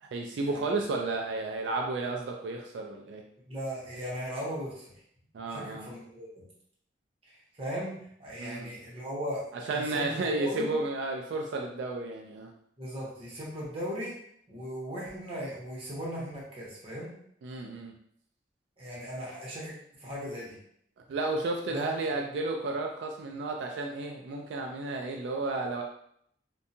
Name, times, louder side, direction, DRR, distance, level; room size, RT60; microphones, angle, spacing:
voice 1, 0.0-3.2 5.3-5.9 8.4-8.7 9.7-12.5 17.4-17.9 21.1-25.8, right 2 dB, 85° right, 2 dB, 0.3 m, -32 dB
voice 2, 3.5-4.9 5.5-6.4 7.3-9.4 9.7-10.8 12.8-14.1 14.5-17.1 18.8-20.6 21.7-21.9, equal, 35° right, -6 dB, 0.9 m, -38 dB
2.7 x 2.2 x 2.6 m, 0.69 s
head